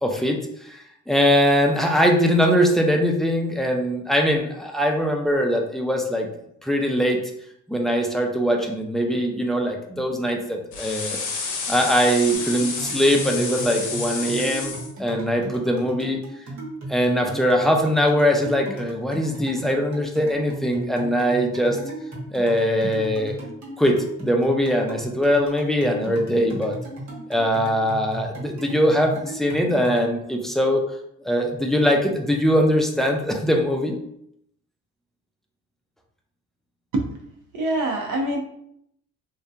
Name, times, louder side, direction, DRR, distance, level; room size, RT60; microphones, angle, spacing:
voice 1, 0.0-6.3 6.6-7.2 7.7-11.2 11.7-16.2 16.9-21.8 22.3-23.4 23.8-26.8 27.3-30.8 31.2-34.0, equal, ahead, 2 dB, 0.3 m, -21 dB
sound 1, 10.7-14.9, left 4 dB, 80° left, 0.6 m, -30 dB
sound 2, 12.3-30.1, right 1 dB, 65° right, 1.0 m, -36 dB
voice 2, 37.5-38.4, right 1 dB, 80° right, 1 dB, 0.7 m, -24 dB
2.7 x 2.2 x 2.3 m, 0.73 s
cardioid pair, 90°, 30 cm